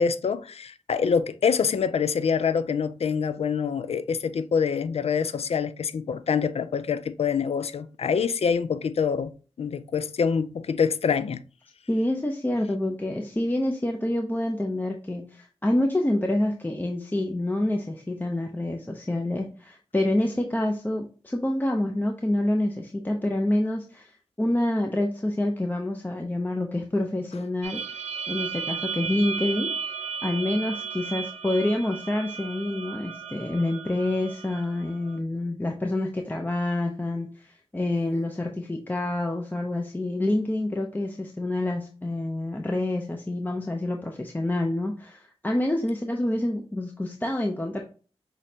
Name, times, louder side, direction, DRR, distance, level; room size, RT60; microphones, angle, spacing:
voice 1, 0.0-9.3 9.6-11.4, left 6 dB, 65° left, 0.4 m, -25 dB
voice 2, 11.9-28.0 28.3-29.7 30.2-47.8, left 1 dB, 15° left, 0.6 m, -27 dB
sound 1, 27.6-35.2, right 6 dB, 85° right, 0.6 m, -34 dB
6.2 x 3.1 x 2.7 m
wide cardioid pair, 80°, 11 cm